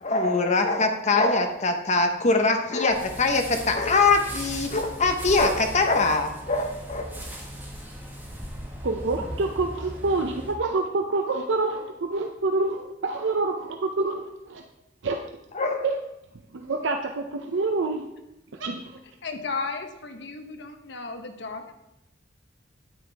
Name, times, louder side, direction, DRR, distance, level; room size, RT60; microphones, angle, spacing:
voice 1, 0.0-7.2 15.5-15.8, left 3 dB, 40° left, 4 dB, 1.0 m, -23 dB
sound 1, 2.9-10.5, equal, 10° right, 1.5 m, -38 dB
voice 2, 8.8-14.6 15.0-15.2 15.8-16.0 16.5-18.1 18.5-19.0, right 3 dB, 75° right, 3 dB, 0.6 m, -27 dB
voice 3, 19.2-21.7, left 4 dB, 65° left, 5 dB, 1.0 m, -34 dB
9.4 x 9.2 x 3.4 m, 0.90 s
head